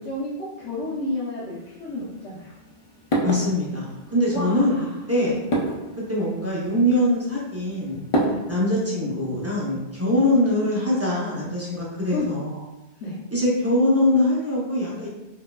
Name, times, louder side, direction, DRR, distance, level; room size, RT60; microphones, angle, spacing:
voice 1, 0.0-2.5 4.3-4.9 5.2-5.4 8.2-8.4 10.1-10.2 12.1-12.3 13.0-13.2, left 2 dB, 80° left, -6 dB, 1.0 m, -31 dB
sound 1, 1.5-8.9, right 1 dB, 45° left, 0.4 m, -31 dB
voice 2, 3.2-4.8 5.1-5.3 6.0-8.0 8.5-12.6 13.3-15.1, left 1 dB, 15° right, -7 dB, 0.6 m, -23 dB
4.3 x 2.7 x 2.3 m, 1.0 s
omnidirectional pair, 1.2 m